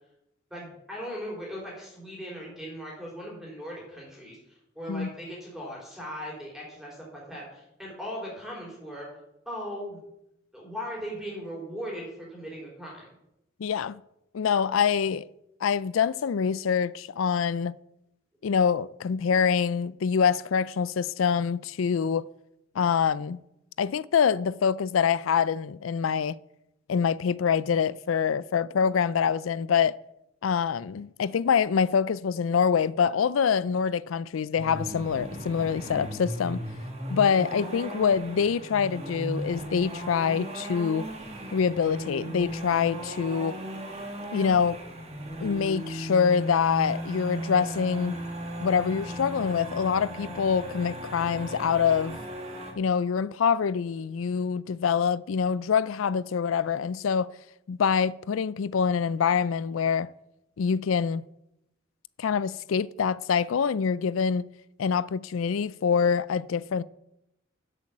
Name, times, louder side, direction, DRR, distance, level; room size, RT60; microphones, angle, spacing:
voice 1, 0.5-9.1 9.5-10.0 10.5-13.0, equal, ahead, 4.0 m, -38 dB
voice 2, 13.6-14.0 14.3-15.3 15.6-17.7 18.4-22.3 22.8-23.4 23.8-26.4 26.9-30.0 30.4-36.6 37.1-41.1 41.5-43.6 44.3-44.8 45.4-48.2 48.6-52.2 52.8-57.3 57.7-60.1 60.6-61.2 62.2-64.5 64.8-66.8, left 6 dB, 85° left, 0.4 m, -25 dB
sound 1, 34.6-52.7, right 1 dB, 35° right, 2.2 m, -36 dB
11.0 x 8.0 x 7.3 m
head